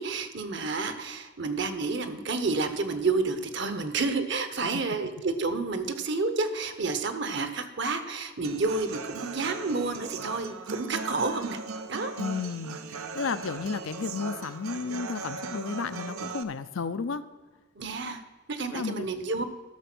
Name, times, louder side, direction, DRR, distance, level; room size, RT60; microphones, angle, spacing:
voice 1, 0.0-11.6 11.9-12.1 17.8-18.2 18.5-19.4, right 3 dB, 55° right, 8 dB, 1.0 m, -30 dB
Human voice / Acoustic guitar, 8.4-16.4, right 4 dB, 80° right, 0.8 m, -38 dB
voice 2, 12.2-17.2 18.1-18.2 18.7-19.1, left 5 dB, 70° left, 12 dB, 0.5 m, -33 dB
12.5 x 6.7 x 6.1 m, 1.3 s
head